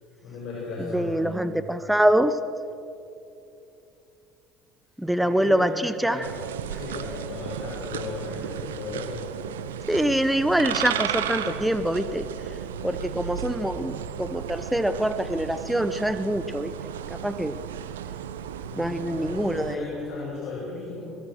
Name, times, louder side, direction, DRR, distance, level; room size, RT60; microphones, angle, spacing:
voice 1, 0.2-1.4 5.2-6.3 6.7-9.2 18.6-21.1, left 3 dB, 60° left, -5 dB, 6.3 m, -36 dB
voice 2, 0.8-2.4 5.0-6.2 9.9-12.3 12.8-16.7 17.1-17.6 18.8-19.8, right 1 dB, 5° right, 12 dB, 1.0 m, -25 dB
sound 1, 6.2-19.7, right 9 dB, 85° right, 0.9 m, -34 dB
22.5 x 21.5 x 6.3 m, 2.7 s
hypercardioid pair, 65°, 0 cm